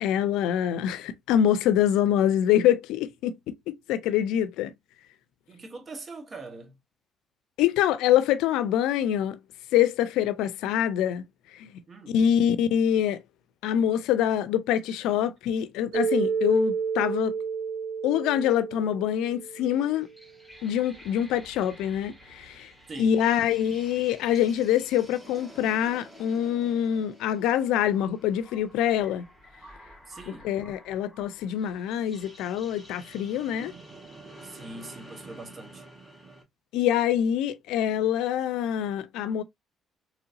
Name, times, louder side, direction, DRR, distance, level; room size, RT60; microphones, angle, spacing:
voice 1, 0.0-4.7 7.6-9.4 9.7-11.2 11.5-11.7 12.1-13.2 13.6-17.3 18.0-20.1 20.6-22.7 23.0-29.2 30.3-33.7 36.7-39.4, left 10 dB, 85° left, 0.4 m, -25 dB
voice 2, 5.5-6.7 11.9-12.2 22.9-23.2 30.1-30.5 33.3-33.9 34.4-35.8, right 2 dB, 40° right, 1.2 m, -43 dB
Mallet percussion, 15.9-20.1, right 6 dB, 70° right, 1.4 m, -30 dB
sound 1, 19.5-36.4, right 1 dB, 10° right, 2.2 m, -50 dB
3.8 x 3.0 x 2.6 m
supercardioid pair, 80°, 0 cm